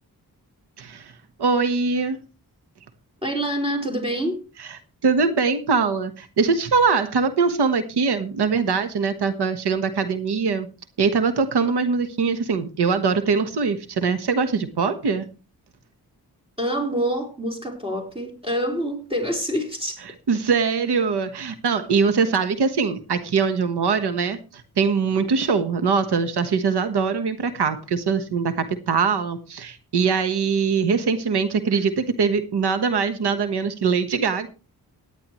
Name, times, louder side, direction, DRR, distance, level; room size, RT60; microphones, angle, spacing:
voice 1, 0.8-1.1 1.4-2.2 5.0-10.7 11.0-15.3 20.3-34.5, right 5 dB, 90° right, 10 dB, 1.4 m, -22 dB
voice 2, 3.2-4.5 16.6-20.0, equal, 15° right, 2 dB, 4.5 m, -26 dB
17.5 x 10.5 x 3.1 m, 0.31 s
cardioid pair, 85°, 38 cm